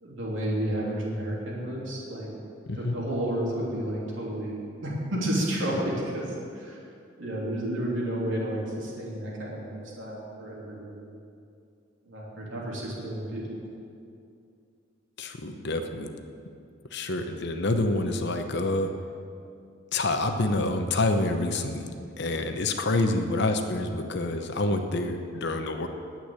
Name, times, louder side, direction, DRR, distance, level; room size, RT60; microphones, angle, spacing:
voice 1, 0.0-2.3 2.8-6.8 7.2-11.1 12.1-13.6, right 1 dB, 70° right, -4 dB, 3.1 m, -31 dB
voice 2, 15.2-16.1 16.9-18.9 19.9-21.9 22.2-25.9, left 2 dB, 60° left, 6 dB, 0.9 m, -27 dB
9.3 x 8.6 x 9.7 m, 2.5 s
head